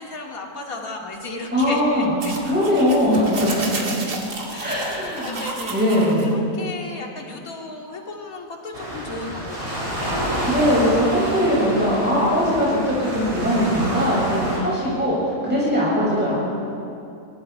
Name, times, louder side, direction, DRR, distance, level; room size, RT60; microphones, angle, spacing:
voice 1, 0.0-2.3 4.5-4.9 5.2-5.7 6.3-10.1 14.2-14.3, left 2 dB, 60° left, 0 dB, 2.7 m, -35 dB
voice 2, 1.5-2.1 2.4-3.5 4.6-5.4 5.7-6.5 10.5-16.4, equal, 5° right, -8 dB, 6.6 m, -20 dB
sound 1, 2.2-6.3, right 2 dB, 85° right, 2.8 m, -31 dB
Waves surf, 8.7-14.6, equal, 35° right, 6.5 m, -28 dB
25.5 x 24.0 x 4.8 m, 2.6 s
omnidirectional pair, 1.7 m